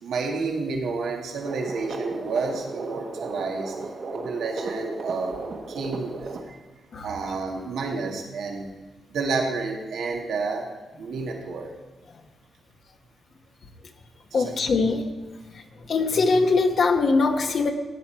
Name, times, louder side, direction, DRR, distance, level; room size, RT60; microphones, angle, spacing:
voice 1, 0.0-3.8 4.1-5.4 5.7-6.6 7.0-8.7 9.1-10.7 11.0-11.7 14.3-14.9, right 4 dB, 85° right, 1 dB, 1.7 m, -30 dB
sound 1, 1.4-6.4, right 3 dB, 65° right, 1.5 m, -35 dB
voice 2, 14.3-15.0 15.9-17.7, left 4 dB, 60° left, 3 dB, 1.0 m, -21 dB
16.0 x 9.2 x 4.4 m, 1.2 s
cardioid pair, 95°, 0 cm